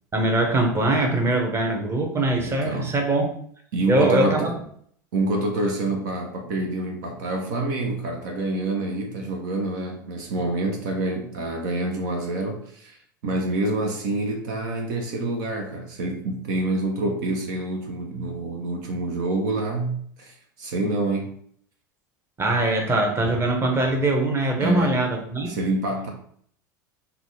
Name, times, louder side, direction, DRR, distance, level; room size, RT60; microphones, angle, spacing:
voice 1, 0.1-3.3 3.9-4.5 22.4-25.6, right 2 dB, 25° right, 2 dB, 1.1 m, -22 dB
voice 2, 2.5-2.9 3.7-4.5 5.1-13.0 13.2-21.4 24.6-25.1 25.5-26.1, right 2 dB, 65° right, 3 dB, 0.7 m, -27 dB
3.9 x 2.3 x 4.6 m, 0.62 s
hypercardioid pair, 80°, 11 cm